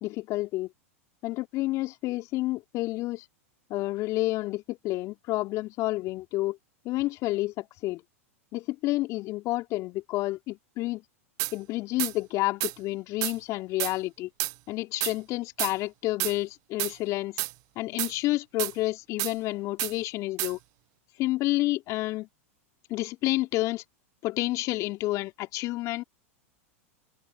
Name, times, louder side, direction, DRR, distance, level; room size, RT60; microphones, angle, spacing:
voice 1, 0.0-0.7 1.2-3.3 3.7-6.6 6.9-8.0 8.5-11.0 11.5-14.3 14.7-17.4 17.8-20.6 21.2-22.3 22.9-23.8 24.2-26.0, left 18 dB, 45° left, 3.3 m, -29 dB
sound 1, 11.4-11.5 12.0-12.1 12.6-12.7 13.2-13.4 13.8-13.9 14.4-14.5 15.0-15.1 15.6-15.7 16.2-16.4 16.8-16.9 17.4-17.5 18.0-18.1 18.6-18.7 19.2-19.3 19.8-19.9 20.4-20.5, right 25 dB, 45° right, 0.7 m, -29 dB
hypercardioid pair, 95°, 8 cm